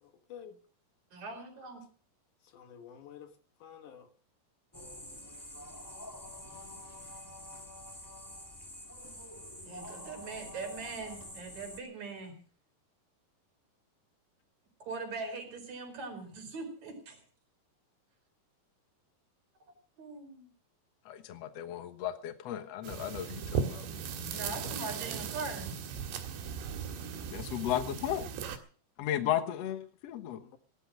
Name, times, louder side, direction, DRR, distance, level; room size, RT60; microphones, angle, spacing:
voice 1, 0.0-0.6 2.5-3.3 3.6-4.1 30.4-30.6, left 8 dB, 60° left, 8 dB, 2.3 m, -50 dB
voice 2, 1.1-1.8 9.6-12.4 14.8-17.2 20.0-20.5 24.3-25.7, right 3 dB, 40° right, 4 dB, 5.7 m, -41 dB
sound 1, 4.7-11.8, left 1 dB, 10° left, 1.1 m, -47 dB
voice 3, 21.0-23.9 24.6-24.7 27.3-28.2 29.0-30.4, left 11 dB, 80° left, 10 dB, 1.4 m, -35 dB
sound 2, 22.8-28.6, right 7 dB, 85° right, 3.9 m, -37 dB
18.0 x 12.0 x 6.2 m, 0.43 s
omnidirectional pair, 4.9 m